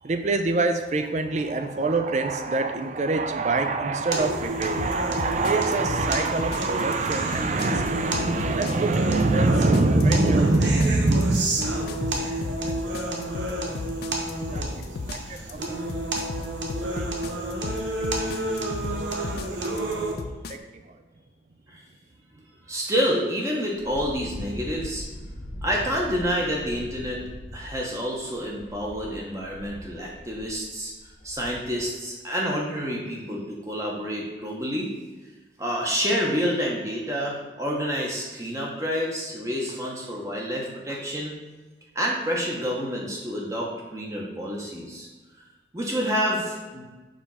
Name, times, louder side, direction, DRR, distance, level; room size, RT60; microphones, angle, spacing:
voice 1, 0.0-13.2 13.6-14.0 14.5-16.0 16.3-16.5 17.0-17.4 18.0-18.6 18.9-19.4 19.7-19.9 20.5-21.0, right 3 dB, 40° right, 7 dB, 0.5 m, -25 dB
sound 1, 4.1-20.1, right 1 dB, 85° right, 1.0 m, -30 dB
sound 2, 4.8-20.5, left 3 dB, 60° left, 0.4 m, -34 dB
voice 2, 22.7-25.0 25.6-27.2 27.5-30.9 31.2-34.9 35.6-41.3 41.9-45.1 45.7-46.8, equal, 15° right, -2 dB, 0.9 m, -28 dB
Wind, 23.7-31.9, left 1 dB, 40° left, 1.0 m, -40 dB
5.0 x 3.5 x 5.5 m, 1.3 s
head